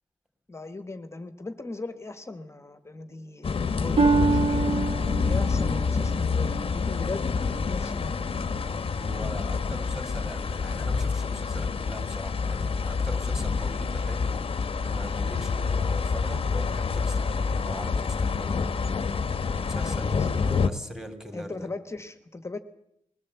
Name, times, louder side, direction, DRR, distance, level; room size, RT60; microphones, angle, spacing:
voice 1, 0.5-4.7 5.2-7.3 7.6-8.1 19.7-20.3 21.3-22.6, left 2 dB, 20° left, 10 dB, 1.3 m, -38 dB
sound 1, 3.4-20.7, left 5 dB, 45° left, 1.0 m, -27 dB
Harp, 4.0-7.7 8.3-8.7 9.3-9.4, right 5 dB, 35° right, 1.3 m, -27 dB
voice 2, 8.9-19.1 19.6-21.7, equal, 5° right, 6 dB, 3.2 m, -40 dB
21.5 x 16.5 x 8.1 m, 0.78 s
wide cardioid pair, 135°, 13 cm